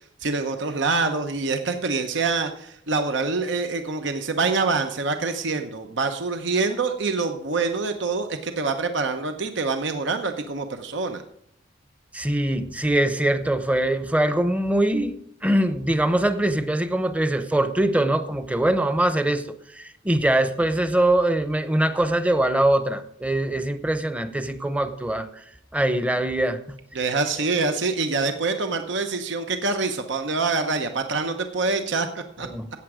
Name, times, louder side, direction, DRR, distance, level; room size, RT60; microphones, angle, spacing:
voice 1, 0.2-11.2 26.9-32.5, right 4 dB, 65° right, 6 dB, 0.9 m, -25 dB
voice 2, 12.1-19.4 19.7-25.4 25.7-26.8 32.4-32.7, right 1 dB, 5° right, 10 dB, 0.8 m, -23 dB
14.0 x 8.7 x 4.9 m, 0.71 s
head